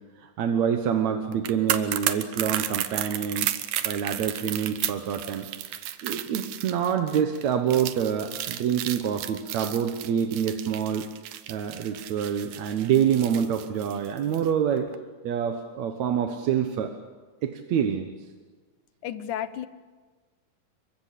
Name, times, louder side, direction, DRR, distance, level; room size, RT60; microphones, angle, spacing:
voice 1, 0.2-3.5 3.8-5.5 6.0-11.1 11.5-14.9 15.2-16.9 17.4-18.1, right 8 dB, 65° right, 6 dB, 2.3 m, -26 dB
sound 1, 1.3-14.5 14.8-14.9, right 12 dB, 85° right, 2.8 m, -33 dB
voice 2, 19.0-19.7, left 10 dB, 70° left, 12 dB, 2.4 m, -32 dB
27.0 x 23.5 x 8.4 m, 1.4 s
omnidirectional pair, 3.8 m